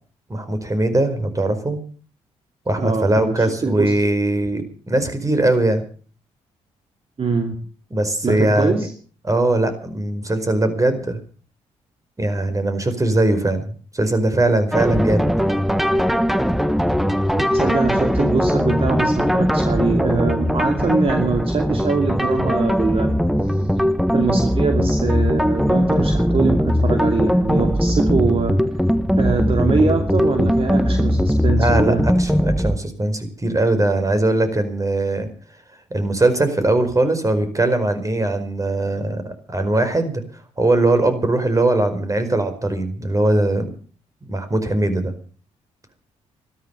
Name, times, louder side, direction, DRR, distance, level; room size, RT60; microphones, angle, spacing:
voice 1, 0.3-1.8 2.7-5.8 7.9-8.9 9.3-11.2 12.2-15.3 31.6-35.3 35.9-40.2 40.6-43.7 44.3-45.1, right 2 dB, 25° right, 9 dB, 4.8 m, -20 dB
voice 2, 2.8-3.9 7.2-7.5 8.2-8.9 17.5-23.1 23.6-23.7 24.1-28.5 29.2-32.0, right 4 dB, 45° right, 4 dB, 2.6 m, -23 dB
sound 1, 14.7-32.8, equal, ahead, 1.4 m, -19 dB
15.0 x 13.0 x 7.0 m, 0.42 s
supercardioid pair, 55°, 14 cm